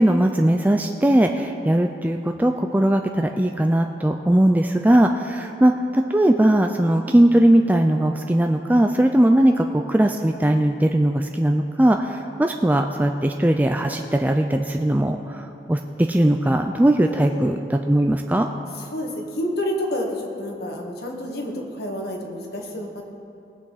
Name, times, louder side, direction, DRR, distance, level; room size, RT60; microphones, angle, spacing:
voice 1, 0.0-18.5, right 1 dB, 10° right, 4 dB, 0.3 m, -19 dB
voice 2, 17.0-17.4 18.7-23.0, left 1 dB, 65° left, 1 dB, 1.7 m, -29 dB
19.5 x 8.4 x 4.1 m, 2.6 s
head